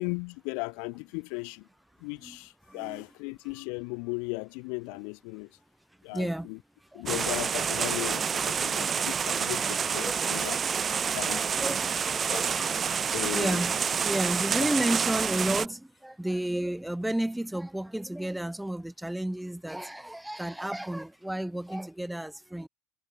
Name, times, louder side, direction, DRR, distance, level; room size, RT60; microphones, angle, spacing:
voice 1, 0.0-1.7 2.0-5.5 6.0-6.6 6.9-10.6 11.1-11.4 12.3-12.4 13.1-13.6, left 40 dB or more, 75° left, 0.7 m, -36 dB
voice 2, 2.7-3.0 3.5-3.6 6.1-6.5 6.9-7.1 11.0-13.0 13.3-13.8 14.0-22.7, right 1 dB, 5° right, 1.6 m, -33 dB
sound 1, 7.1-15.7, right 6 dB, 30° right, 1.1 m, -28 dB
supercardioid pair, 100°, 0 cm